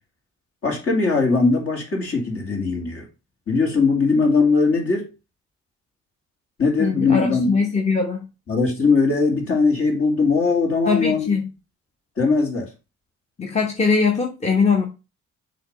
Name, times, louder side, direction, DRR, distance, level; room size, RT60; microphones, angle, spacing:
voice 1, 0.6-3.1 3.5-5.1 6.6-7.6 8.5-11.3 12.2-12.7, left 4 dB, 50° left, 2.4 m, -20 dB
voice 2, 6.8-8.3 10.9-11.5 13.4-14.8, left 5 dB, 20° left, 1.1 m, -21 dB
6.9 x 3.0 x 5.2 m
cardioid pair, 90°, 30 cm